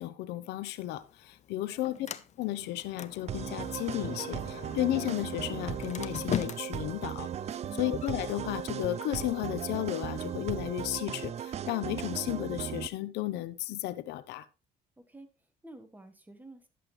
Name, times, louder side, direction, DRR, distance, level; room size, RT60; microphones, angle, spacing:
voice 1, 0.0-2.0 2.4-7.3 7.8-14.5, left 15 dB, 85° left, 0.8 m, -34 dB
Sliding door, 0.7-10.7, left 9 dB, 45° left, 0.7 m, -43 dB
voice 2, 1.7-2.0 7.6-8.0 15.0-16.7, right 2 dB, 10° right, 1.5 m, -51 dB
sound 1, 2.0-8.3, right 6 dB, 80° right, 2.3 m, -59 dB
sound 2, 3.3-12.9, right 9 dB, 40° right, 0.4 m, -37 dB
11.0 x 7.5 x 3.2 m
cardioid pair, 110°, 17 cm